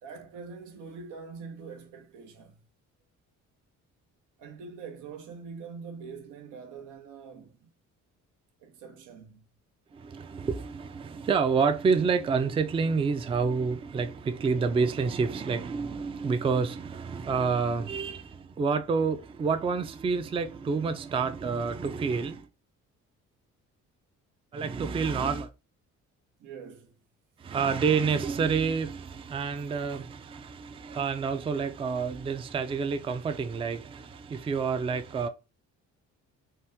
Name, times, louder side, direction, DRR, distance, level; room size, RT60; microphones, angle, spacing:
voice 1, 0.0-2.6 4.4-7.7 8.6-9.4 26.4-27.0, right 5 dB, 90° right, 0.8 m, -44 dB
voice 2, 9.9-22.5 24.5-25.5 27.4-35.3, right 5 dB, 20° right, 0.3 m, -28 dB
2.8 x 2.2 x 3.4 m
cardioid pair, 90°, 30 cm